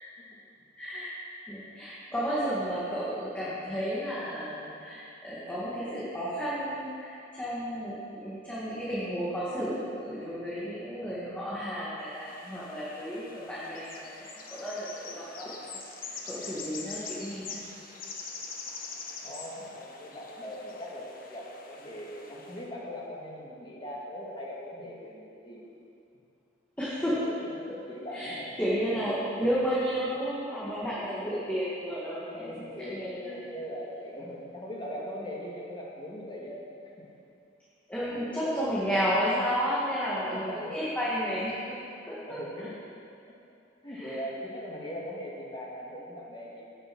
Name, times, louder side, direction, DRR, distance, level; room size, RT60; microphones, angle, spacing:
voice 1, 0.8-1.1 1.5-15.5 16.0-17.6 26.8-27.3 28.1-33.4 37.9-41.8 42.1-42.7 43.9-44.2, equal, 10° left, -10 dB, 2.2 m, -32 dB
sound 1, 12.1-22.7, left 4 dB, 50° left, 1.3 m, -44 dB
voice 2, 19.2-25.7 27.2-28.6 28.9-29.4 30.9-31.4 32.3-37.1 38.1-39.2 40.3-40.7 41.8-42.0 42.3-42.8 43.8-46.6, equal, 25° left, -4 dB, 2.3 m, -40 dB
17.5 x 6.7 x 6.2 m, 2.7 s
head